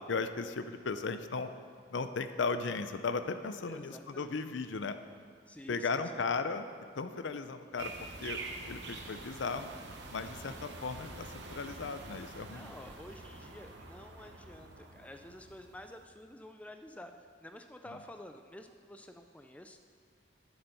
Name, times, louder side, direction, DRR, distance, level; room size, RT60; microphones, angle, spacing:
voice 1, 0.1-1.5 1.9-5.0 5.7-6.7 7.0-7.9 8.2-8.4 8.7-9.7 10.1-12.7, left 4 dB, 75° left, 10 dB, 0.5 m, -36 dB
voice 2, 3.7-4.4 5.5-5.9 12.5-17.1 17.4-19.8, left 1 dB, 5° left, 6 dB, 0.4 m, -50 dB
sound 1, 7.8-16.0, right 3 dB, 65° right, 1.0 m, -46 dB
11.0 x 7.2 x 5.4 m, 2.1 s
head